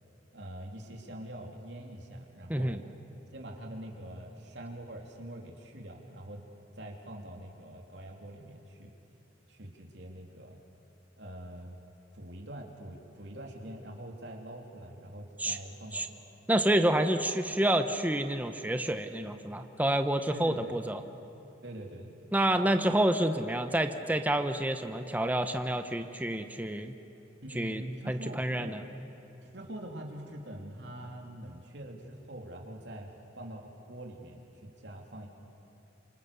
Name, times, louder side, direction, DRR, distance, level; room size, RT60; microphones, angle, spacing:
voice 1, 0.3-2.8 3.3-6.4 6.8-8.9 9.5-10.6 11.2-11.8 12.1-16.1 20.3-20.8 21.6-22.3 27.4-28.8 29.4-33.1 33.4-35.3, right 1 dB, 65° right, 0 dB, 3.1 m, -44 dB
voice 2, 16.5-21.0 22.3-26.9 27.5-28.8, right 1 dB, 10° right, 7 dB, 0.9 m, -28 dB
27.0 x 25.5 x 6.9 m, 2.9 s
head